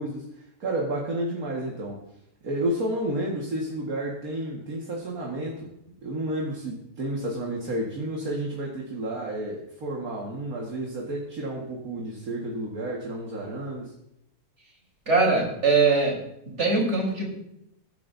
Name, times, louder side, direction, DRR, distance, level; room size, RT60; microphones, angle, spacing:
voice 1, 0.0-2.0 2.4-5.7 6.0-13.9, right 1 dB, 65° right, -2 dB, 2.2 m, -31 dB
voice 2, 15.1-16.2 16.6-17.3, right 4 dB, 45° right, -2 dB, 4.4 m, -21 dB
21.0 x 10.5 x 2.7 m, 0.80 s
omnidirectional pair, 1.7 m